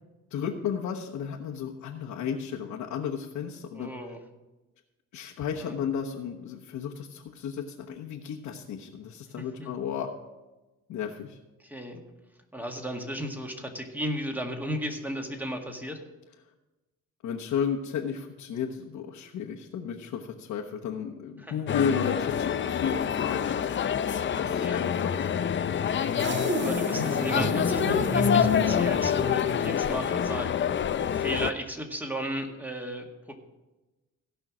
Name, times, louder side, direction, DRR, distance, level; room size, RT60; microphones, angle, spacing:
voice 1, 0.3-3.9 5.1-10.1 10.9-11.4 17.2-23.7 24.4-25.4, left 7 dB, 75° left, -2 dB, 1.2 m, -33 dB
voice 2, 3.7-4.2 5.6-5.8 9.4-9.7 11.6-12.0 12.5-16.0 21.4-21.6 24.6-24.8 26.5-30.5 31.1-33.4, equal, 5° right, 3 dB, 1.9 m, -35 dB
sound 1, 21.7-31.5, left 8 dB, 40° left, 0.6 m, -26 dB
sound 2, 26.2-30.5, right 2 dB, 40° right, 1.4 m, -33 dB
16.5 x 5.7 x 6.1 m, 1.1 s
cardioid pair, 90°, 30 cm